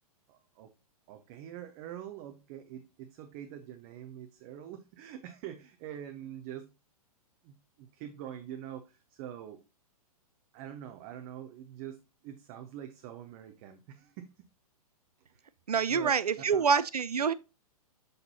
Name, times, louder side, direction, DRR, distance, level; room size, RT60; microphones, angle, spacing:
voice 1, 0.3-0.7 1.1-6.7 7.4-9.6 10.5-14.5 15.3-15.5 15.9-16.2 16.5-16.7, right 10 dB, 30° right, 0.6 m, -45 dB
voice 2, 15.7-17.3, right 6 dB, 80° right, 0.4 m, -26 dB
6.5 x 5.9 x 2.8 m
figure-of-eight pair, 110°, 20 cm